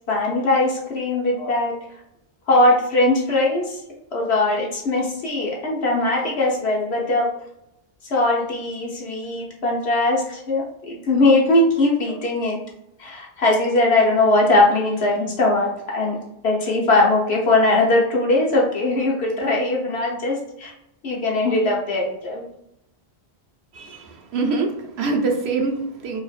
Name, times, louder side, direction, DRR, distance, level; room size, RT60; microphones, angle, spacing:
voice 1, 0.1-1.7 2.5-3.8 4.1-7.3 8.1-12.6 13.0-16.2 16.4-20.7 21.0-22.4, left 2 dB, 75° left, -2 dB, 1.2 m, -20 dB
voice 2, 23.7-26.2, right 3 dB, 75° right, 3 dB, 0.9 m, -24 dB
4.8 x 2.4 x 2.4 m, 0.81 s
omnidirectional pair, 1.1 m